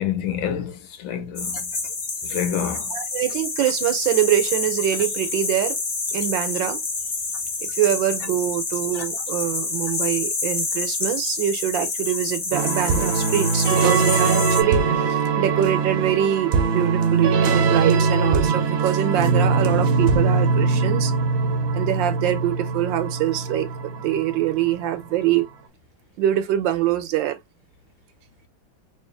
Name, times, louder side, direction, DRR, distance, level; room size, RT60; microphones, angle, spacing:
voice 1, 0.0-1.7 2.2-2.9, left 9 dB, 85° left, 1.5 m, -28 dB
sound 1, 1.3-14.6, left 4 dB, 50° left, 0.7 m, -28 dB
voice 2, 2.9-5.8 6.1-6.8 7.6-21.1 21.7-25.5 26.2-27.4, right 12 dB, 75° right, 1.3 m, -24 dB
sound 2, 12.5-25.1, right 4 dB, 60° right, 1.0 m, -21 dB
3.1 x 3.0 x 3.4 m
omnidirectional pair, 2.1 m